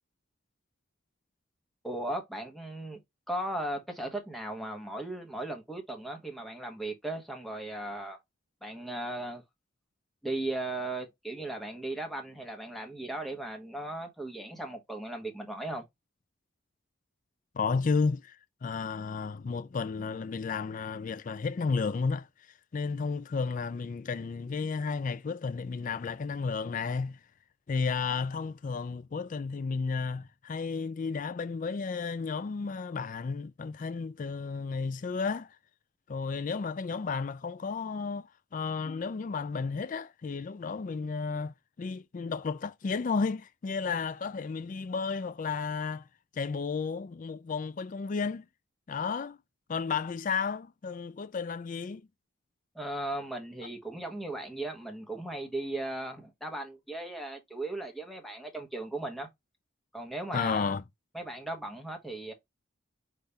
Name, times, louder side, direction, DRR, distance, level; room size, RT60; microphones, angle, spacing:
voice 1, 1.8-3.0 3.3-8.2 8.6-9.4 10.2-15.8 52.7-59.3 59.9-60.7 61.1-62.3, right 1 dB, ahead, 1.0 m, -37 dB
voice 2, 17.5-22.3 22.7-27.2 27.7-35.6 36.1-46.1 46.3-48.5 48.9-49.4 49.7-52.0 60.3-60.8, left 5 dB, 40° left, 0.3 m, -33 dB
5.5 x 2.5 x 3.3 m
head